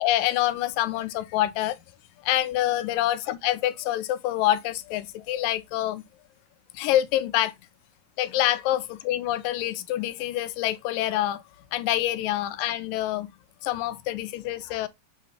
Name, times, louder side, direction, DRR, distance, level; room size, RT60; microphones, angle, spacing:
voice 1, 0.0-1.8 2.2-6.0 6.7-7.5 8.2-11.4 11.7-13.3 13.6-14.9, left 14 dB, 90° left, 2.3 m, -26 dB
8.1 x 2.9 x 4.6 m
omnidirectional pair, 3.9 m